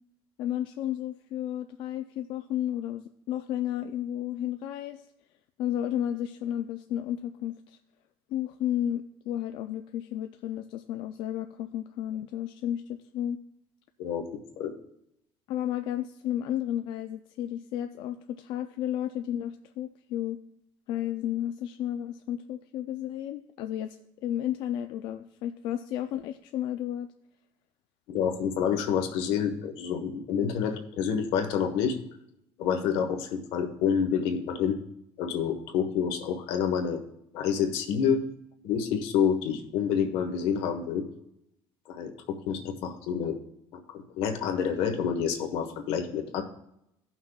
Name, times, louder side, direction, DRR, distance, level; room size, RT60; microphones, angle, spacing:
voice 1, 0.4-5.1 5.6-7.8 8.3-13.4 15.5-20.4 20.9-27.1, left 11 dB, 60° left, 7 dB, 0.4 m, -32 dB
voice 2, 28.1-32.0 32.6-34.8 35.2-37.0 37.3-38.2 38.6-41.0 41.9-43.3 43.9-46.4, left 7 dB, 80° left, 4 dB, 1.2 m, -28 dB
16.5 x 5.9 x 2.3 m, 0.82 s
cardioid pair, 180°, 9 cm